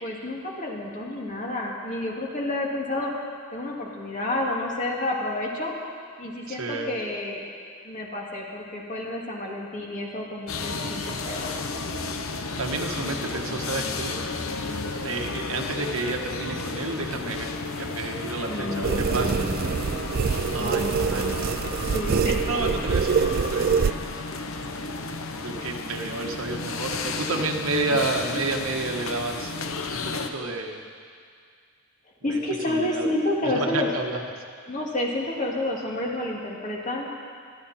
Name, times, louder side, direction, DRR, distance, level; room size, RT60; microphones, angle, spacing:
voice 1, 0.0-3.1 3.5-5.7 6.2-7.5 7.8-11.6 18.5-19.6 20.6-21.5 21.9-22.4 32.2-33.9 34.7-37.1, left 1 dB, 35° left, -2 dB, 2.3 m, -30 dB
voice 2, 6.5-6.9 12.6-14.2 15.0-19.5 20.5-21.4 22.5-24.0 25.4-29.5 29.9-30.8 32.3-32.4 32.7-33.1 33.4-34.2, right 3 dB, 75° right, 2 dB, 1.4 m, -30 dB
sound 1, 10.5-30.3, left 3 dB, 70° left, 0.9 m, -32 dB
sound 2, 18.8-23.9, right 6 dB, 45° right, 0.4 m, -25 dB
26.0 x 11.0 x 4.3 m, 2.1 s
head